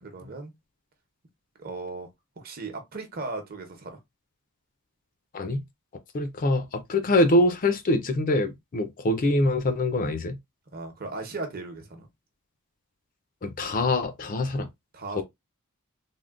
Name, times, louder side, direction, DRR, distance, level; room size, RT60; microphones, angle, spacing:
voice 1, 0.0-0.5 1.6-2.1 2.4-4.0 10.7-12.1 14.9-15.2, right 3 dB, 45° right, 0.8 m, -37 dB
voice 2, 6.1-10.4 13.4-14.7 15.1-15.2, left 1 dB, 40° left, 0.4 m, -24 dB
3.5 x 2.1 x 2.4 m
head